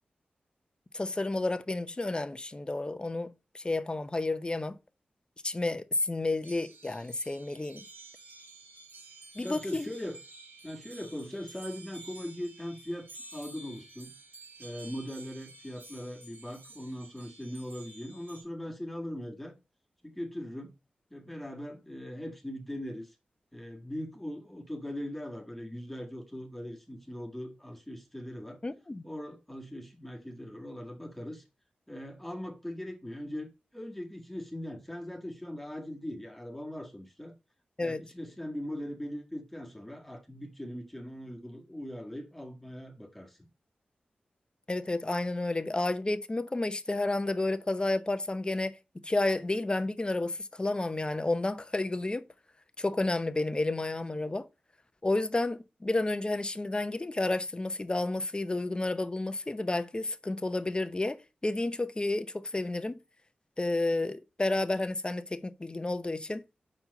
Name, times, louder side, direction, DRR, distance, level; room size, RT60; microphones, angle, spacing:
voice 1, 0.9-4.8 5.4-7.8 9.4-9.9 28.6-29.0 37.8-38.0 44.7-48.7 49.0-52.2 52.8-54.4 55.0-61.2 61.4-63.0 63.6-66.4, left 2 dB, 30° left, 0.7 m, -31 dB
sound 1, 6.4-18.4, right 3 dB, 80° right, 4.3 m, -51 dB
voice 2, 9.4-10.2 10.6-14.1 14.6-19.5 20.0-20.7 21.1-23.1 23.5-28.6 29.0-31.4 31.9-37.3 37.8-43.4, left 1 dB, 5° left, 1.8 m, -40 dB
5.5 x 4.5 x 5.3 m
cardioid pair, 45°, 3 cm